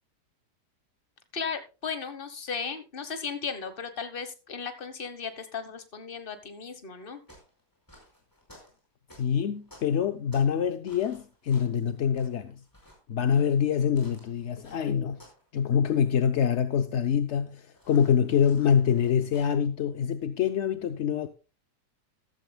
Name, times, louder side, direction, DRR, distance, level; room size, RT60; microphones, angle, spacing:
voice 1, 1.3-7.2, left 6 dB, 35° left, 1.3 m, -36 dB
sound 1, 7.0-10.6 10.9-15.5 15.7-16.1 17.7-19.5, equal, 10° left, 5.1 m, -55 dB
voice 2, 9.2-12.6 13.1-15.2 15.5-21.3, left 8 dB, 60° left, 0.8 m, -25 dB
14.0 x 12.5 x 2.2 m
omnidirectional pair, 1.9 m